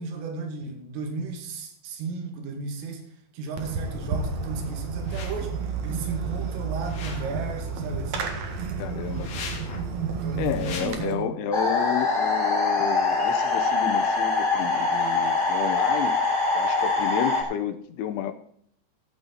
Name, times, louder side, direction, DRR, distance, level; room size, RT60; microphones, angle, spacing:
voice 1, 0.0-3.0 3.3-8.3 10.2-11.3, right 4 dB, 85° right, 4 dB, 4.9 m, -34 dB
Fireworks, 3.6-11.0, right 5 dB, 65° right, 1.8 m, -31 dB
sound 1, 5.0-5.5 6.8-7.5 9.1-9.9 10.5-10.9, left 5 dB, 50° left, 2.1 m, -39 dB
voice 2, 8.8-9.5 10.3-18.3, left 9 dB, 75° left, 9 dB, 3.1 m, -31 dB
sound 2, 11.5-17.4, left 3 dB, 15° left, 2.2 m, -23 dB
16.0 x 8.6 x 4.1 m, 0.63 s
omnidirectional pair, 5.7 m